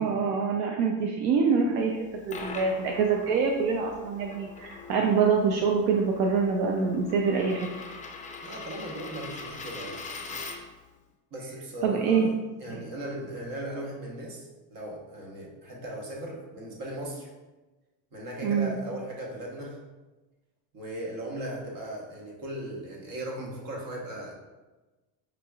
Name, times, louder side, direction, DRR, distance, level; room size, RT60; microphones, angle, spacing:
voice 1, 0.0-2.0 2.3-7.7 11.8-12.3 18.4-18.8, right 5 dB, 80° right, 1 dB, 0.6 m, -25 dB
Coin (dropping), 1.9-10.8, left 4 dB, 20° left, 0.4 m, -42 dB
voice 2, 8.4-10.0 11.3-12.3 12.6-14.4 14.7-17.3 18.1-19.8 20.7-24.4, right 1 dB, 50° right, -2 dB, 1.3 m, -37 dB
5.0 x 2.9 x 2.3 m, 1.1 s
supercardioid pair, 100°, 45 cm